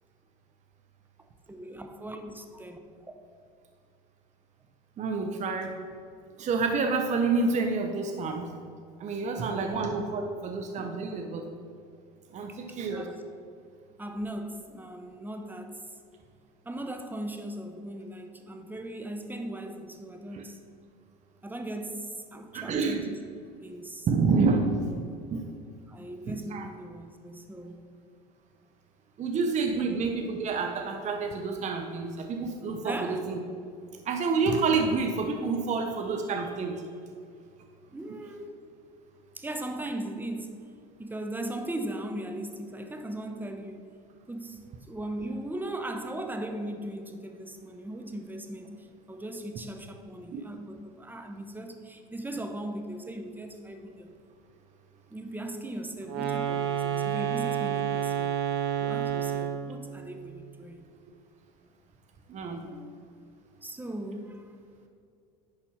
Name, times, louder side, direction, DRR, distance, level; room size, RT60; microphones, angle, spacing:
voice 1, 1.5-3.1 9.4-9.9 12.5-13.2 14.0-15.8 16.6-20.6 21.4-23.2 23.6-24.1 25.9-27.9 32.8-33.2 37.9-38.5 39.3-40.6 41.0-43.8 44.3-54.1 55.1-58.3 58.8-60.9 62.5-62.9 63.6-64.5, right 1 dB, 10° right, 6 dB, 1.1 m, -38 dB
voice 2, 5.0-5.7 6.4-8.5 9.0-11.5 12.3-13.1 20.3-20.4 22.5-23.1 24.1-24.8 25.3-25.5 26.5-26.7 29.2-33.4 34.1-36.8 50.3-50.4 62.3-62.6, right 4 dB, 40° right, 4 dB, 0.9 m, -28 dB
sound 1, 56.0-59.7, right 9 dB, 60° right, 1.2 m, -29 dB
10.5 x 4.3 x 5.5 m, 2.4 s
hypercardioid pair, 85°, 19 cm